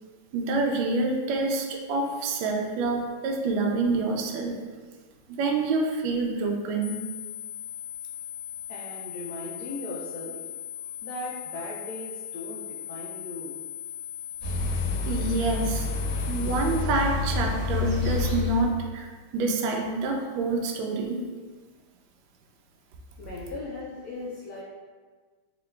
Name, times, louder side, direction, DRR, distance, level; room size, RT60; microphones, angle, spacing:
voice 1, 0.3-4.6 5.4-7.0 15.1-15.9 16.3-19.1 19.3-21.2, right 3 dB, 75° right, 1 dB, 1.2 m, -27 dB
sound 1, 6.8-16.8, left 10 dB, 70° left, 1.3 m, -39 dB
voice 2, 8.7-10.4 11.0-13.6 23.2-24.6, left 2 dB, 85° left, -5 dB, 0.8 m, -38 dB
sound 2, 14.4-18.7, left 4 dB, 30° right, 0.7 m, -28 dB
3.7 x 2.9 x 3.1 m, 1.5 s
omnidirectional pair, 2.3 m